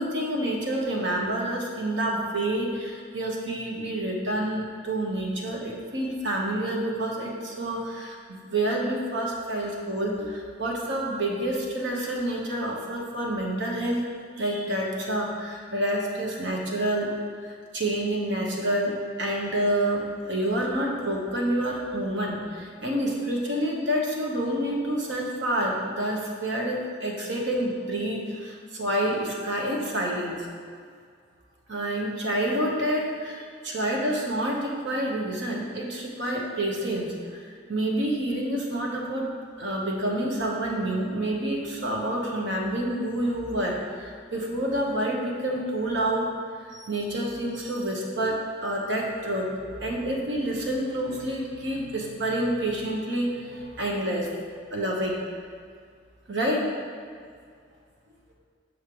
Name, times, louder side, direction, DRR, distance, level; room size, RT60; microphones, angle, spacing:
voice 1, 0.0-14.0 14.4-17.1 17.4-30.5 31.7-37.4 37.7-39.3 39.6-46.3 46.7-54.3 54.7-55.2 56.3-56.7, right 1 dB, 65° right, -1 dB, 1.0 m, -28 dB
6.4 x 3.3 x 5.9 m, 2.2 s
head